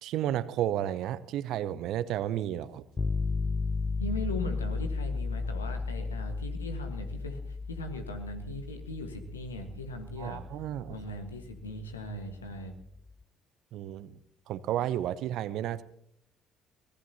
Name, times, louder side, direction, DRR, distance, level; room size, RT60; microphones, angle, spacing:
voice 1, 0.0-2.9 10.2-11.0 13.7-14.2 14.5-15.8, right 11 dB, 60° right, 18 dB, 0.7 m, -32 dB
sound 1, 3.0-12.8, left 4 dB, 30° left, 0.8 m, -35 dB
voice 2, 4.0-10.4 10.9-12.7, left 1 dB, 85° left, 6 dB, 1.5 m, -39 dB
25.0 x 18.5 x 2.9 m, 0.69 s
figure-of-eight pair, 50°, 0 cm